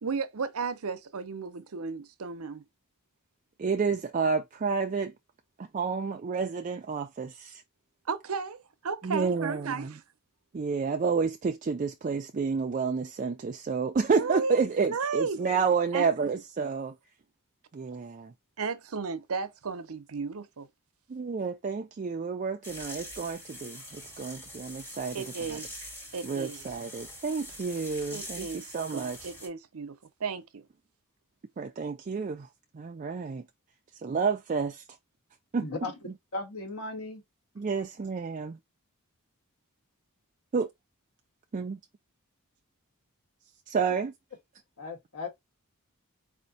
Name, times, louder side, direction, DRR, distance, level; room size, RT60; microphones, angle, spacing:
voice 1, 0.0-2.6 8.1-10.0 14.1-15.4 15.9-16.3 18.6-20.7 25.1-25.7 26.1-26.6 28.1-30.6, right 5 dB, 70° right, 0.7 m, -34 dB
voice 2, 3.6-5.1 5.6-7.6 9.0-10.0 10.5-17.0 17.7-18.3 21.1-25.2 25.5-25.6 26.2-29.3 31.6-32.5 32.7-33.4 34.0-34.8 35.5-35.7 37.6-38.6 40.5-40.7 41.5-41.8 43.7-44.1, right 5 dB, 35° right, 0.4 m, -30 dB
sound 1, 22.6-29.5, equal, 10° left, 1.5 m, -44 dB
voice 3, 35.6-35.9 36.3-37.2 44.8-45.3, left 3 dB, 75° left, 1.7 m, -36 dB
4.4 x 2.5 x 3.9 m
head